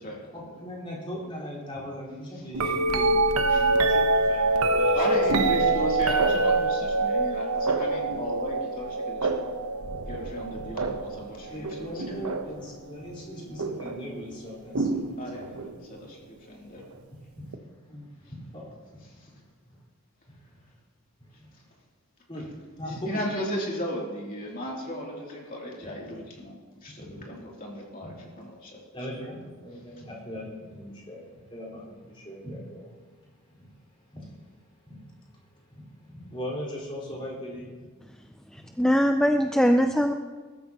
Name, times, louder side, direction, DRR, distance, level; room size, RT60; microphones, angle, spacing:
voice 1, 0.3-5.1 10.7-10.8 11.5-15.6 16.0-16.1 17.3-19.4 19.6-19.8 20.3-20.6 21.4-21.6 22.3-22.5 22.8-23.2 25.8-26.2 27.0-27.4 28.0-28.1 28.9-37.9 38.5-38.7, equal, 25° left, -5 dB, 4.4 m, -40 dB
sound 1, 2.5-12.7 13.6-14.0 14.7-15.7 17.5-17.6, right 2 dB, 90° right, 0.9 m, -25 dB
voice 2, 4.9-9.3 10.1-12.3 15.2-16.8 19.2-19.3 22.8-28.8, equal, 40° left, -3 dB, 2.9 m, -35 dB
voice 3, 38.5-40.1, equal, 5° left, 5 dB, 0.4 m, -22 dB
21.5 x 13.0 x 2.9 m, 1.4 s
head